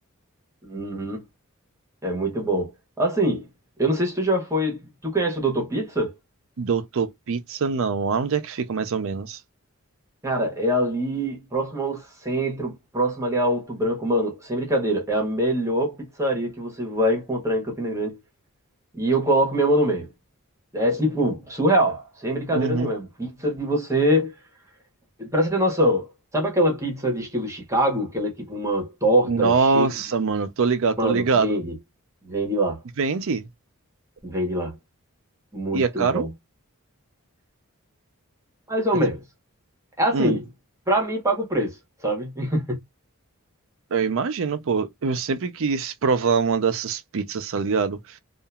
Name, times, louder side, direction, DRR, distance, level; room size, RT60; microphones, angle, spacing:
voice 1, 0.6-1.2 2.0-2.7 3.0-3.5 3.8-6.1 10.2-18.2 18.9-20.1 20.7-24.3 25.2-26.1 26.3-29.9 31.0-31.7 32.2-32.8 34.2-34.8 35.5-36.3 38.7-39.2 40.0-40.5 40.9-41.8 42.0-42.8, right 1 dB, 15° right, 1.2 m, -24 dB
voice 2, 6.6-9.4 22.5-22.9 29.3-31.6 33.0-33.5 35.7-36.2 40.1-40.4 43.9-48.2, right 5 dB, 65° right, 0.5 m, -24 dB
2.9 x 2.5 x 2.3 m
head